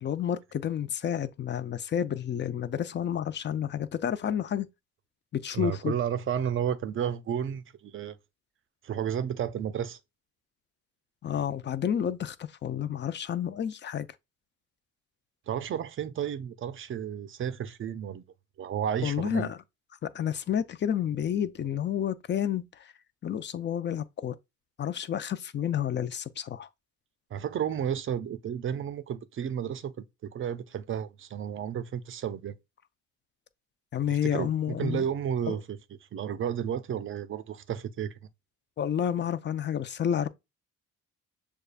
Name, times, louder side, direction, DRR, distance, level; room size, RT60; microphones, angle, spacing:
voice 1, 0.0-4.7 5.3-5.9 11.2-14.1 19.0-19.6 20.0-22.6 23.2-24.3 24.8-26.7 33.9-35.0 35.5-35.6 38.8-40.3, left 9 dB, 40° left, 0.4 m, -30 dB
voice 2, 5.5-8.2 8.8-10.0 15.5-18.2 18.6-19.5 27.3-32.5 34.1-35.8 36.1-38.1, right 9 dB, 45° right, 0.5 m, -32 dB
6.4 x 2.4 x 2.4 m
cardioid pair, 90°, 30 cm